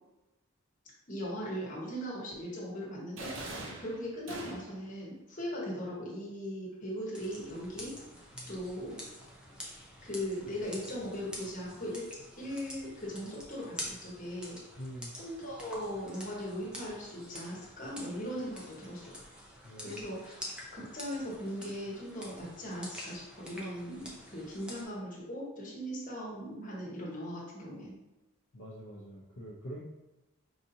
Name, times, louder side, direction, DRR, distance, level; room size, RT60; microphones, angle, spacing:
voice 1, 1.1-7.9 8.5-9.0 10.0-12.1 12.4-14.6 15.1-19.2 19.8-20.4 20.7-27.9, equal, 35° left, -4 dB, 1.1 m, -39 dB
sound 1, 3.2-4.9, right 2 dB, 65° right, 0.6 m, -42 dB
sound 2, 7.1-24.8, equal, 5° right, 0.6 m, -47 dB
voice 2, 14.8-15.1 19.6-20.0 28.5-29.8, equal, 55° left, -5 dB, 0.6 m, -45 dB
4.8 x 2.7 x 2.7 m, 1.0 s
head